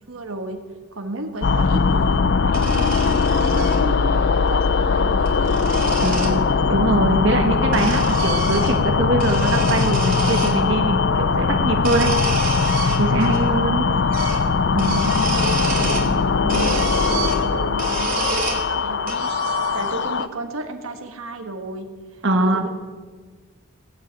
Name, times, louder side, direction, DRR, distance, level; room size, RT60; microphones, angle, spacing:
voice 1, 0.1-0.6 0.9-5.9 13.9-14.1 15.6-19.5 19.7-22.7, right 2 dB, 75° right, 5 dB, 1.5 m, -33 dB
sound 1, 1.4-20.3, left 4 dB, 55° left, 0.5 m, -20 dB
sound 2, 2.5-3.8 5.0-6.4 7.3-8.9 9.2-10.6 11.7-13.4 13.7-13.8 14.1-14.4 14.7-16.1 16.5-18.7 19.1-20.0, right 3 dB, 40° right, 3.0 m, -29 dB
voice 2, 6.0-6.4 6.7-12.1 13.0-13.9 14.7-15.1 22.2-22.7, right 2 dB, 55° right, 3 dB, 1.4 m, -22 dB
18.0 x 7.8 x 9.0 m, 1.5 s
head